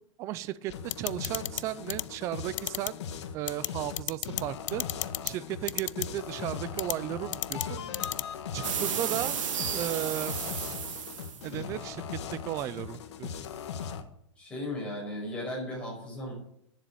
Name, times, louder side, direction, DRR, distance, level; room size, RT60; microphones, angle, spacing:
voice 1, 0.2-0.7 1.0-3.0 3.3-4.8 5.2-7.8 8.5-9.4 9.7-10.3 11.4-13.3, right 13 dB, 20° right, 16 dB, 0.4 m, -35 dB
sound 1, 0.7-14.0, left 7 dB, 60° left, 1.5 m, -39 dB
sound 2, 0.9-1.6 1.9-2.0 2.6-2.9 3.5-3.7 4.0-4.4 4.7-5.3 5.7-6.1 6.8-6.9 7.3-7.6 7.9-8.2, left 13 dB, 75° left, 0.4 m, -30 dB
sound 3, 8.6-11.5, right 8 dB, 75° right, 2.4 m, -33 dB
voice 2, 14.4-16.3, left 1 dB, 5° left, -3 dB, 5.5 m, -36 dB
11.0 x 7.4 x 9.0 m, 0.73 s
hypercardioid pair, 160°, 16 cm